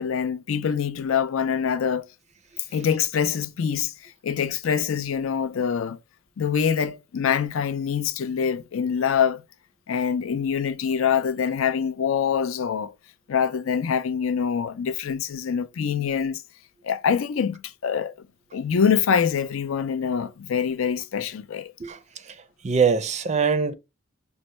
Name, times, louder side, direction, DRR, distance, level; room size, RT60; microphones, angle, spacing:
voice 1, 0.0-2.1 2.7-6.0 6.4-9.4 9.9-12.9 13.3-16.4 16.8-18.3 18.5-21.7, left 7 dB, 80° left, 0.4 m, -25 dB
voice 2, 21.8-23.7, right 5 dB, 30° right, 0.4 m, -24 dB
5.3 x 2.1 x 3.1 m
head